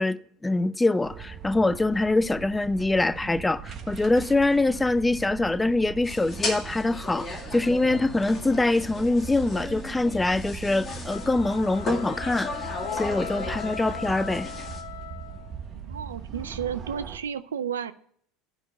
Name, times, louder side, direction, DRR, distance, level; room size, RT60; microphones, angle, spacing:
voice 1, 0.0-12.5 12.9-14.5, left 2 dB, 10° left, 0.4 m, -24 dB
sound 1, 1.0-17.2, right 7 dB, 45° right, 1.3 m, -40 dB
sound 2, 6.0-14.8, left 3 dB, 30° left, 1.9 m, -36 dB
sound 3, 11.1-15.6, left 10 dB, 80° left, 0.6 m, -39 dB
voice 2, 15.8-17.9, right 8 dB, 85° right, 0.4 m, -32 dB
9.9 x 5.3 x 8.1 m
hypercardioid pair, 80°, 0 cm